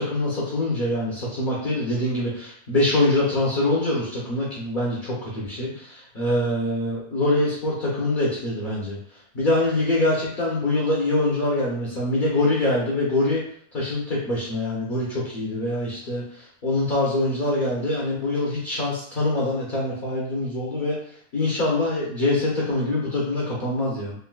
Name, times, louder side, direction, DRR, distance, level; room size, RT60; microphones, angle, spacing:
voice 1, 0.0-9.0 9.3-13.4 13.7-16.2 16.6-21.0 21.3-24.1, left 1 dB, 45° left, -5 dB, 0.6 m, -24 dB
3.7 x 2.6 x 2.2 m, 0.62 s
omnidirectional pair, 1.7 m